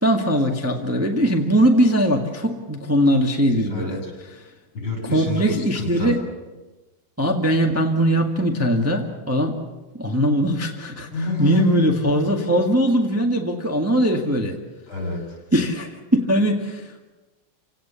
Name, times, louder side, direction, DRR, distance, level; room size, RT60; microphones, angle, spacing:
voice 1, 0.0-4.0 5.1-6.2 7.2-9.6 9.9-11.1 11.4-14.6 15.5-17.0, equal, 5° right, 1 dB, 1.5 m, -20 dB
voice 2, 3.7-4.1 4.7-6.2 11.1-11.8 14.9-15.4, left 2 dB, 65° left, 1 dB, 7.9 m, -27 dB
29.0 x 17.5 x 7.0 m, 1.2 s
omnidirectional pair, 2.4 m